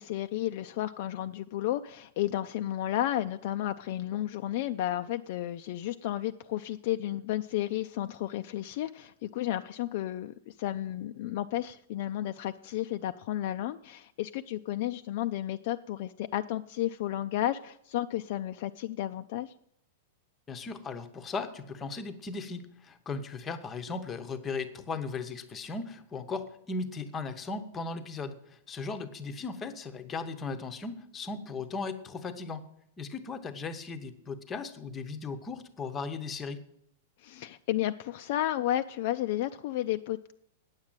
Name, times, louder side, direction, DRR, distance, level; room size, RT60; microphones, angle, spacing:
voice 1, 0.0-19.5 37.2-40.3, left 13 dB, 45° left, 8 dB, 0.4 m, -32 dB
voice 2, 20.5-32.7 33.0-36.6, left 4 dB, 15° left, 8 dB, 0.8 m, -37 dB
9.6 x 7.4 x 9.0 m, 0.72 s
supercardioid pair, 170°, 0 cm